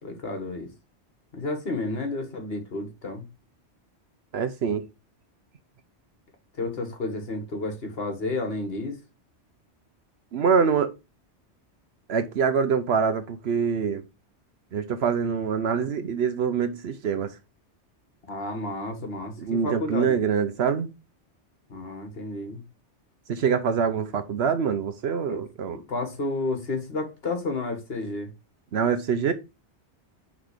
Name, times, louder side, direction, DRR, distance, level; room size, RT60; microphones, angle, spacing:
voice 1, 0.0-0.7 1.3-3.3 6.6-9.0 18.3-20.2 21.7-22.6 25.3-25.4 25.7-28.3, left 2 dB, 60° left, 1.7 m, -31 dB
voice 2, 4.3-4.8 10.3-10.9 12.1-14.0 14.7-17.3 19.4-20.9 23.3-25.8 28.7-29.3, right 6 dB, 70° right, 0.9 m, -25 dB
5.8 x 3.7 x 5.0 m
omnidirectional pair, 1.2 m